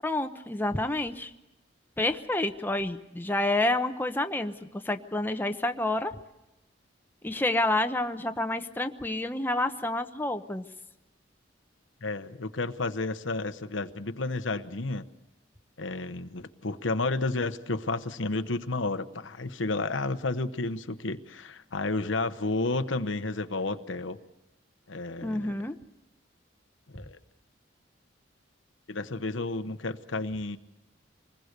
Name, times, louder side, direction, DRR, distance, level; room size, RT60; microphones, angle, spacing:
voice 1, 0.0-1.3 2.0-6.1 7.2-10.6 25.2-25.8, left 2 dB, 10° left, 6 dB, 0.9 m, -29 dB
voice 2, 12.0-15.0 15.8-24.2 24.9-25.6 26.9-27.2 28.9-30.6, left 3 dB, 85° left, 10 dB, 1.0 m, -31 dB
25.5 x 20.5 x 6.7 m, 0.96 s
head